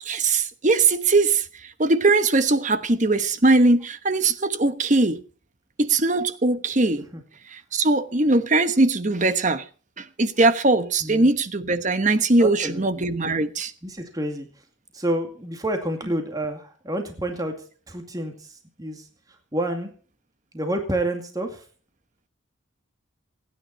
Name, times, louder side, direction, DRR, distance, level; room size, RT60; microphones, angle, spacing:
voice 1, 0.0-5.2 5.8-7.1 7.5-9.7 10.0-13.7, right 2 dB, 40° right, 1.1 m, -21 dB
voice 2, 12.4-12.8 13.8-14.5 14.9-17.6 17.9-19.9 20.5-21.6, right 1 dB, 20° right, 2.2 m, -29 dB
28.0 x 9.9 x 4.3 m
head